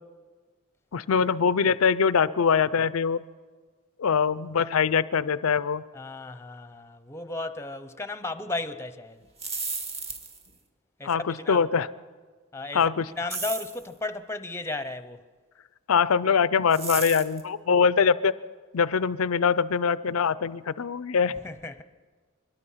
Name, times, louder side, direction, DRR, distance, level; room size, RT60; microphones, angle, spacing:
voice 1, 0.9-3.2 4.0-5.8 11.0-11.9 12.7-13.1 15.9-18.3 18.7-21.3, left 6 dB, 80° left, 0.5 m, -23 dB
voice 2, 5.9-9.2 11.0-11.7 12.5-12.9 13.2-15.2 21.4-21.8, left 2 dB, 15° left, 0.8 m, -34 dB
sound 1, 9.2-10.5 13.3-13.8 16.7-17.4, right 4 dB, 30° right, 1.8 m, -33 dB
24.0 x 21.0 x 5.7 m
head